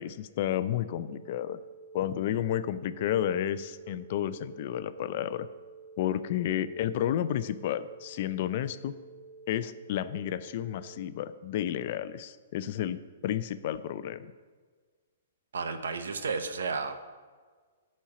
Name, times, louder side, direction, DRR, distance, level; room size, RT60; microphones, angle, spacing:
voice 1, 0.0-1.6 1.9-5.5 6.0-8.9 9.5-14.3, left 11 dB, 50° left, 13 dB, 0.5 m, -31 dB
sound 1, 1.1-11.1, right 4 dB, 55° right, 0.5 m, -50 dB
voice 2, 15.5-16.9, right 4 dB, 85° right, 9 dB, 0.9 m, -32 dB
11.5 x 4.4 x 7.0 m, 1.5 s
hypercardioid pair, 140°, 0 cm